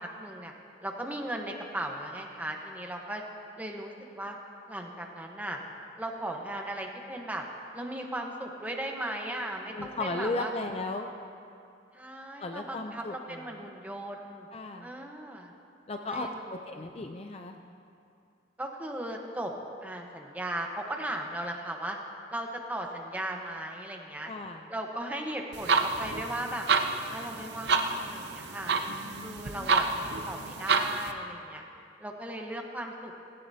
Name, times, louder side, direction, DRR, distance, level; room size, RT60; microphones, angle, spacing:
voice 1, 0.2-0.5 0.8-3.2 3.6-4.4 4.7-5.6 6.0-7.4 7.7-10.5 11.9-14.5 14.8-15.5 16.1-16.9 18.6-19.5 19.8-22.0 22.3-24.3 24.7-26.7 27.1-28.7 29.2-31.7 32.0-33.1, right 1 dB, 10° right, 1 dB, 1.1 m, -37 dB
voice 2, 9.7-11.1 12.4-13.4 14.5-14.9 15.9-17.6 24.3-24.6 28.9-30.0, left 2 dB, 35° left, 4 dB, 0.5 m, -36 dB
sound 1, 25.5-31.1, right 4 dB, 60° right, 0.7 m, -29 dB
16.5 x 16.5 x 2.8 m, 2.5 s
head